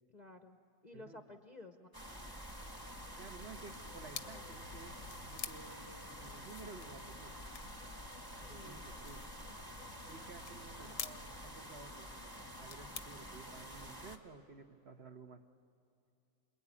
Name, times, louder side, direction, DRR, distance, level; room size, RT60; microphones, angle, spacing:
voice 1, 0.1-0.6 0.8-1.9 8.5-8.9 10.8-11.0, left 2 dB, 35° left, 6 dB, 0.8 m, -53 dB
voice 2, 0.9-1.2 3.2-5.0 5.2-7.3 8.4-9.2 10.1-15.4, right 4 dB, 45° right, 6 dB, 1.3 m, -54 dB
sound 1, 1.9-14.2, equal, 15° right, 1.4 m, -49 dB
sound 2, 2.5-13.6, left 8 dB, 85° left, 1.5 m, -52 dB
sound 3, 3.3-10.5, left 7 dB, 65° left, 1.1 m, -60 dB
28.0 x 21.0 x 9.7 m, 2.6 s
omnidirectional pair, 1.6 m